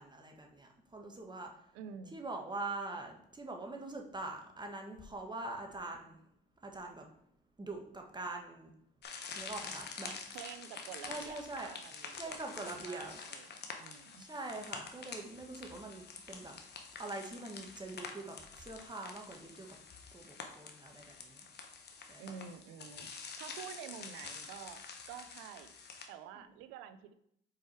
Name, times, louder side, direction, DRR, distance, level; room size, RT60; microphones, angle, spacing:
voice 1, 0.0-1.5 2.1-6.2 6.6-7.1 7.6-8.7 9.3-10.1 11.1-11.7 12.1-13.2 14.2-16.5 17.0-19.7 20.1-21.4 22.1-22.2, right 2 dB, 20° right, 2 dB, 1.4 m, -43 dB
voice 2, 1.7-2.2 10.1-12.4 12.6-14.3 22.2-24.8 25.1-25.7 26.1-27.1, right 8 dB, 80° right, 11 dB, 0.6 m, -49 dB
sound 1, 9.0-26.1, left 5 dB, 55° left, 1.1 m, -47 dB
4.8 x 4.5 x 4.4 m, 0.72 s
hypercardioid pair, 60°, 21 cm